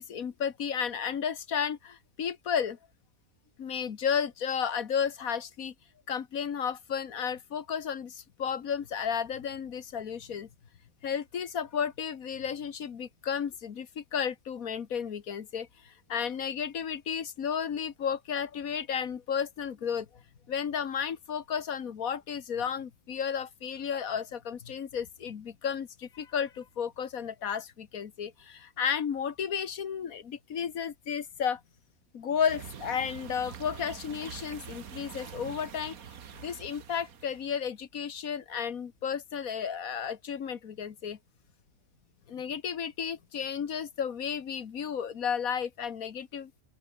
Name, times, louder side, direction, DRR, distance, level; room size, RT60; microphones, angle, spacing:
voice 1, 0.0-2.8 3.6-5.7 6.1-10.5 11.0-20.1 20.5-31.6 32.1-36.0 36.4-41.2 42.3-46.5, left 7 dB, 75° left, 1.8 m, -33 dB
sound 1, 32.5-37.5, right 7 dB, 80° right, 1.8 m, -45 dB
open air
omnidirectional pair, 1.5 m